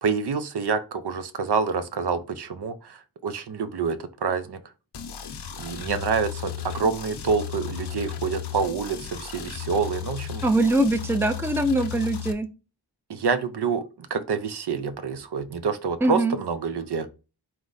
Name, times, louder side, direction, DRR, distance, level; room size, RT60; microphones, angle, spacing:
voice 1, 0.0-4.6 5.6-10.6 13.1-17.1, right 5 dB, 70° right, 0.6 m, -27 dB
sound 1, 4.9-12.3, left 10 dB, 75° left, 0.6 m, -35 dB
voice 2, 10.4-12.5 16.0-16.4, right 1 dB, 5° right, 0.4 m, -22 dB
4.6 x 2.1 x 3.8 m
wide cardioid pair, 70°, 41 cm